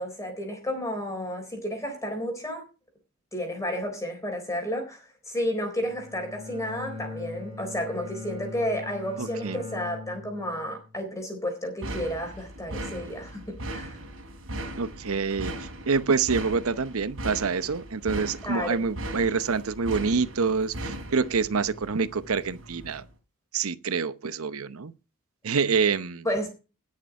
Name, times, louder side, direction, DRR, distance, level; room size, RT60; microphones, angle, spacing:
voice 1, 0.0-2.6 3.3-14.0 18.4-18.8 26.2-26.5, equal, 15° left, 3.8 m, -32 dB
Bowed string instrument, 5.8-11.0, left 3 dB, 30° right, 4.8 m, -41 dB
voice 2, 9.2-9.6 14.8-15.5 15.9-23.1 23.5-24.9 25.4-26.2, right 5 dB, 90° right, 0.8 m, -26 dB
sound 1, 11.8-23.1, right 1 dB, 70° right, 3.3 m, -38 dB
19.5 x 6.6 x 4.8 m
head